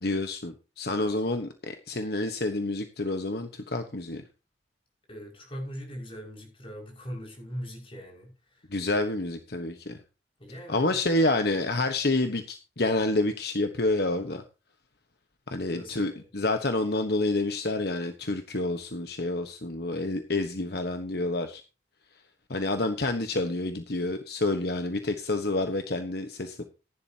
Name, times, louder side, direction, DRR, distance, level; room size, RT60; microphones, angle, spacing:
voice 1, 0.0-4.2 8.7-10.0 10.7-14.4 15.5-21.6 22.5-26.6, left 2 dB, 60° left, 1.2 m, -28 dB
voice 2, 5.1-8.7 10.4-11.0 15.5-16.3, equal, 30° left, 5.8 m, -41 dB
15.5 x 11.0 x 2.9 m
head